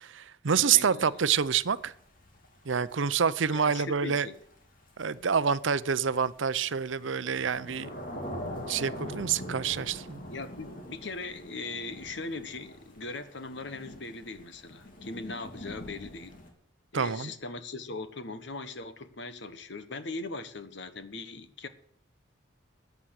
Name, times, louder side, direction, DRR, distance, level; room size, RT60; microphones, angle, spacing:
voice 1, 0.0-1.9 2.7-4.3 5.0-7.9 8.7-10.2 16.9-17.3, right 7 dB, 75° right, 0.6 m, -27 dB
voice 2, 0.6-1.2 3.5-4.4 10.3-16.3 16.9-21.7, left 3 dB, 65° left, 1.3 m, -39 dB
Thunder / Rain, 1.0-16.5, equal, 45° left, 2.7 m, -44 dB
14.5 x 9.5 x 6.5 m
head